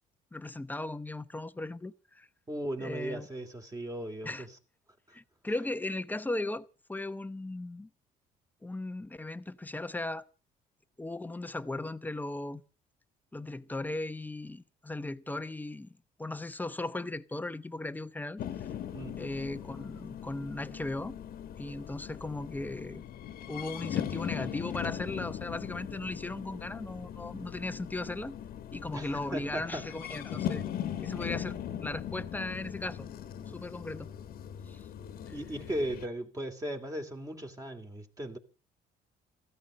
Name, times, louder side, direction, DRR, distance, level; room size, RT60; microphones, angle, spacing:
voice 1, 0.3-2.3 2.8-3.3 4.2-4.5 5.1-7.9 8.6-10.3 11.0-12.6 13.3-18.4 19.2-21.2 21.6-23.0 23.5-28.4 28.7-30.6 31.0-33.1 33.5-34.1 34.7-34.9 35.3-35.4, left 2 dB, 10° left, 0.9 m, -37 dB
voice 2, 2.5-4.5 5.1-5.2 18.9-19.1 28.9-29.8 31.4-31.5 35.3-38.4, right 1 dB, 20° right, 3.1 m, -37 dB
sound 1, 18.4-36.1, left 10 dB, 60° left, 1.5 m, -39 dB
15.5 x 13.5 x 6.4 m
cardioid pair, 110°, 17 cm